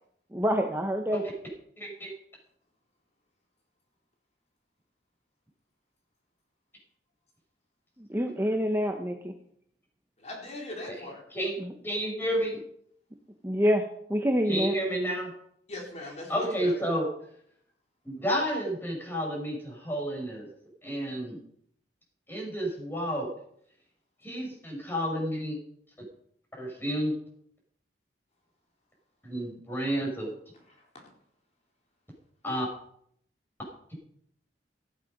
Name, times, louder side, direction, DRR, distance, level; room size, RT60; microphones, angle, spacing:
voice 1, 0.3-1.2 8.0-9.3 11.6-11.7 13.4-13.8 14.1-14.7, equal, 15° right, 3 dB, 1.0 m, -26 dB
voice 2, 1.8-2.1 11.3-11.5 11.8-12.6 14.5-15.3 16.3-17.0 18.0-20.5 20.8-21.4 22.3-23.3 24.2-25.6 26.5-27.1 29.2-30.3 32.4-32.7, equal, 10° left, -1 dB, 6.3 m, -30 dB
voice 3, 10.2-11.2 15.7-16.7 30.7-31.1, left 2 dB, 40° left, -1 dB, 4.0 m, -40 dB
15.0 x 11.0 x 5.4 m, 0.68 s
head